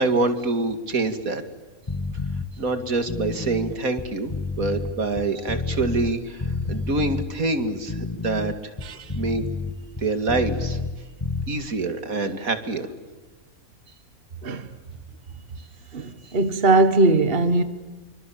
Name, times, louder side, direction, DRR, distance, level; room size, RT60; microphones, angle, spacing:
voice 1, 0.0-1.4 2.6-8.5 9.1-9.4 10.0-10.8 11.5-12.9, right 3 dB, 75° right, 2.7 m, -25 dB
sound 1, 1.9-2.5 3.0-6.1 6.4-7.3 7.8-10.9 11.2-11.5, left 3 dB, 20° left, 1.4 m, -29 dB
voice 2, 8.8-9.1 14.4-14.7 15.9-17.6, right 2 dB, 40° right, 1.7 m, -20 dB
27.0 x 24.5 x 8.6 m
omnidirectional pair, 1.5 m